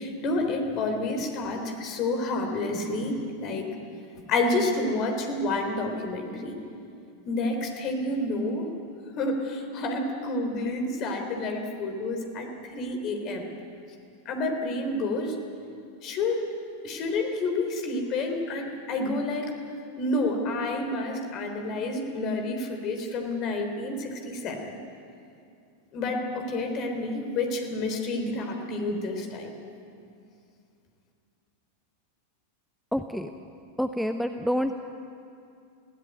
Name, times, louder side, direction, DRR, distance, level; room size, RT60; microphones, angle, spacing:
voice 1, 0.0-3.7 4.3-6.5 7.3-8.7 9.2-13.5 14.3-15.4 16.0-16.5 16.8-19.5 20.0-24.8 25.9-29.5, left 2 dB, 35° left, 4 dB, 3.7 m, -29 dB
voice 2, 32.9-33.3 33.8-34.7, equal, ahead, 7 dB, 0.7 m, -27 dB
21.5 x 16.5 x 9.4 m, 2.5 s
figure-of-eight pair, 90°, 0 cm